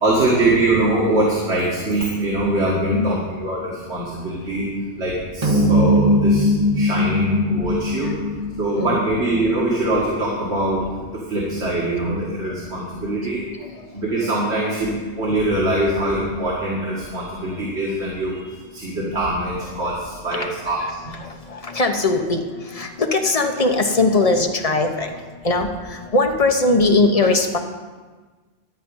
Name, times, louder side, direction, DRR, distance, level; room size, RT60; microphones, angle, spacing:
voice 1, 0.0-4.7 5.0-6.5 6.8-8.1 8.6-10.9 11.1-13.4 13.9-18.5 18.7-21.1, right 1 dB, 85° right, -5 dB, 2.2 m, -23 dB
voice 2, 2.6-3.1 8.8-9.0 20.4-20.5 21.2-22.4 22.7-25.1 25.4-27.6, left 2 dB, 35° left, 4 dB, 0.9 m, -20 dB
sound 1, 5.4-10.0, equal, 40° right, 1.2 m, -20 dB
12.5 x 5.0 x 8.8 m, 1.4 s
omnidirectional pair, 1.1 m